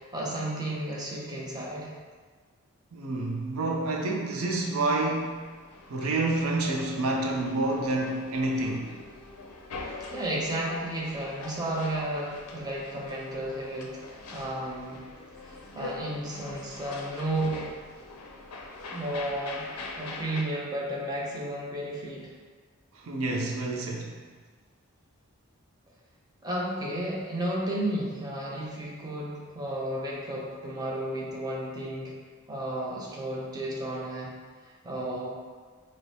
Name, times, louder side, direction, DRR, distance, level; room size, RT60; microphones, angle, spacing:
voice 1, 0.0-1.9 10.1-15.0 15.4-17.7 18.9-19.6 20.0-22.3 26.4-32.1 32.5-34.3 34.8-35.3, right 1 dB, 20° right, -5 dB, 0.5 m, -33 dB
voice 2, 2.9-5.4 5.9-9.0 14.4-14.5 22.9-24.1, right 2 dB, 70° right, 0 dB, 0.4 m, -28 dB
sound 1, 5.2-20.4, left 2 dB, 90° left, 0.4 m, -43 dB
4.6 x 2.0 x 2.7 m, 1.5 s
head